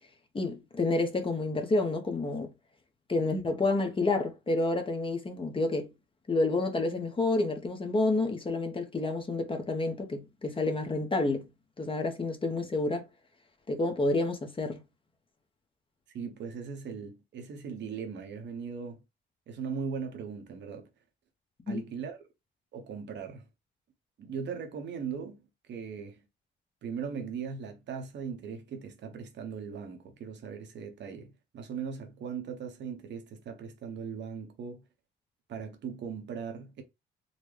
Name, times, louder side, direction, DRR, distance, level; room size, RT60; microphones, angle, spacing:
voice 1, 0.3-2.5 3.1-5.9 6.3-11.5 11.8-13.0 13.7-14.8 21.7-21.8, left 2 dB, 25° left, 0.9 m, -29 dB
voice 2, 16.1-19.0 19.5-20.9 21.7-22.2 22.7-23.4 24.2-25.4 25.7-26.2 26.8-34.8 35.5-36.8, right 6 dB, 65° right, 0.9 m, -39 dB
3.9 x 2.2 x 3.2 m
cardioid pair, 90°, 20 cm